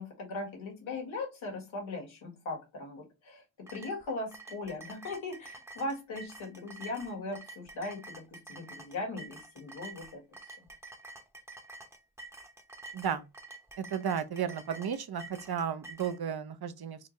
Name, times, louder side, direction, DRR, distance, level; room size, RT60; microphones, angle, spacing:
voice 1, 0.0-10.5, left 2 dB, 85° left, 1.7 m, -39 dB
sound 1, 3.7-16.2, right 2 dB, 5° right, 0.9 m, -49 dB
voice 2, 12.9-13.3 13.8-17.0, right 8 dB, 55° right, 0.8 m, -33 dB
4.1 x 2.6 x 3.1 m
cardioid pair, 40°, 46 cm